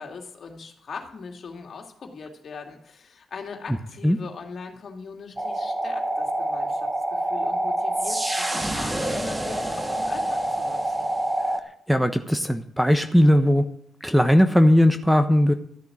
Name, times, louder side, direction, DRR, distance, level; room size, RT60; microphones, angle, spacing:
voice 1, 0.0-11.1, left 5 dB, 60° left, 3 dB, 2.5 m, -40 dB
sound 1, 5.4-11.6, right 1 dB, 20° right, 1.8 m, -26 dB
voice 2, 11.9-13.6 14.0-15.5, equal, ahead, 9 dB, 1.1 m, -18 dB
13.5 x 6.9 x 9.7 m, 0.68 s
supercardioid pair, 55°, 0 cm